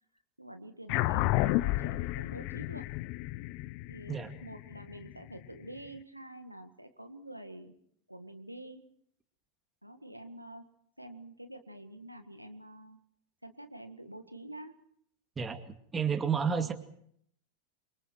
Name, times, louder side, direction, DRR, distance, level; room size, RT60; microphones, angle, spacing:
voice 1, 0.4-2.9 3.9-7.7 8.1-8.8 9.8-10.6 11.0-13.0 13.4-14.8 16.5-16.7, right 1 dB, 90° right, 8 dB, 1.9 m, -47 dB
sound 1, 0.9-5.6, left 17 dB, 45° left, 0.9 m, -31 dB
voice 2, 15.4-16.7, right 6 dB, 15° right, 7 dB, 2.3 m, -31 dB
27.5 x 24.5 x 4.7 m, 0.68 s
figure-of-eight pair, 90°, 0 cm